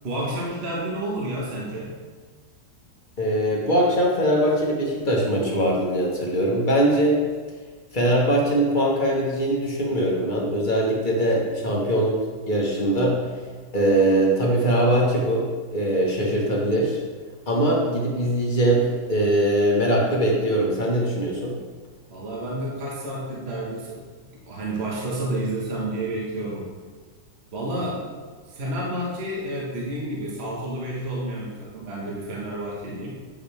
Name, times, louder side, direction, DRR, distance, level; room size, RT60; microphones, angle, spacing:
voice 1, 0.0-1.9 22.1-26.7 27.5-28.0 28.5-33.2, right 1 dB, 40° right, -4 dB, 1.6 m, -30 dB
voice 2, 3.2-7.2 7.9-12.2 12.5-13.2 13.7-17.0 17.5-21.6, right 1 dB, 30° left, -3 dB, 1.5 m, -21 dB
9.7 x 6.5 x 3.5 m, 1.5 s
omnidirectional pair, 1.9 m